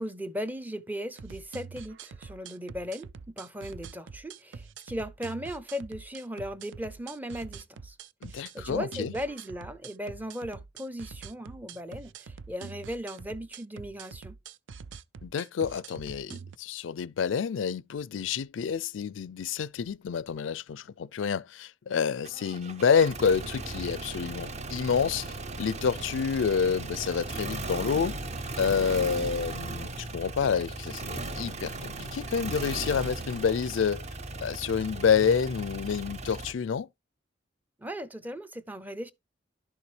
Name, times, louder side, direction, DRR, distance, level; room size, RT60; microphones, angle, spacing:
voice 1, 0.0-8.0 8.3-14.4 37.8-39.1, equal, 10° right, 0.6 m, -37 dB
sound 1, 1.1-16.6, right 5 dB, 75° right, 0.5 m, -45 dB
voice 2, 8.2-9.1 15.2-28.2 28.6-34.0 34.4-36.9, left 6 dB, 90° left, 0.4 m, -28 dB
sound 2, 22.2-36.5, right 2 dB, 35° right, 0.9 m, -37 dB
11.5 x 6.8 x 3.2 m
head